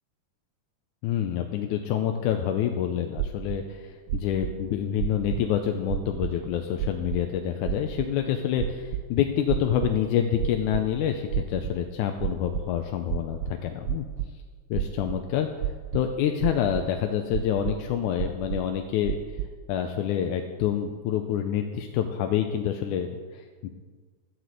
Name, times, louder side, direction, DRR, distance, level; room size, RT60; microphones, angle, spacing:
voice 1, 1.0-14.1 14.7-19.2 19.7-23.7, left 9 dB, 80° left, 5 dB, 2.1 m, -27 dB
sound 1, 3.2-3.6 4.1-4.5 5.0-5.5 5.9-6.3 6.8-7.2 7.7-8.1 8.6-9.0 9.5-10.0 10.4-10.8 11.3-11.8 12.2-12.6 13.1-14.3 14.7-15.2 15.6-16.1 16.4-16.9 17.3-17.8 18.2-18.7 19.0-19.5, right 11 dB, 75° right, 1.8 m, -30 dB
14.0 x 6.0 x 7.8 m, 1.5 s
omnidirectional pair, 3.6 m